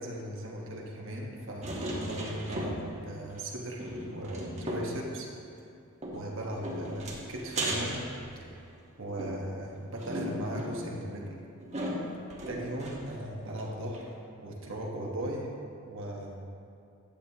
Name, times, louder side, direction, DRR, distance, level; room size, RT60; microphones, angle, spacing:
voice 1, 0.0-5.3 6.1-8.1 8.4-8.6 9.0-11.2 11.8-12.1 12.5-14.1 14.4-15.5 15.8-16.4, right 1 dB, 60° right, -1 dB, 1.1 m, -38 dB
sound 1, 1.6-3.1 3.3-3.4 3.8-5.0 6.0-8.7 9.2-13.2 13.6-13.7 13.9-14.0, right 1 dB, 30° right, 1.1 m, -37 dB
11.5 x 7.6 x 2.9 m, 2.5 s
head